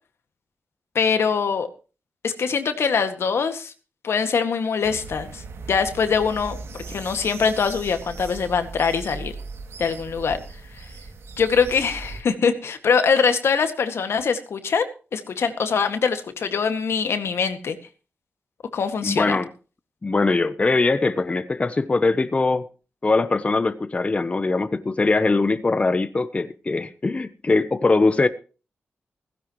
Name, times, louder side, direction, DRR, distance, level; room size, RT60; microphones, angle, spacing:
voice 1, 1.0-1.7 2.2-3.7 4.0-6.6 6.9-9.3 9.8-10.4 10.7-10.9 11.4-17.8 18.7-19.4, left 6 dB, 75° left, 1.9 m, -23 dB
sound 1, 4.8-12.2, right 4 dB, 85° right, 2.4 m, -38 dB
voice 2, 19.0-19.5 20.0-22.6 23.0-28.3, left 3 dB, 30° left, 0.8 m, -21 dB
16.5 x 16.0 x 3.1 m
wide cardioid pair, 110°, 4 cm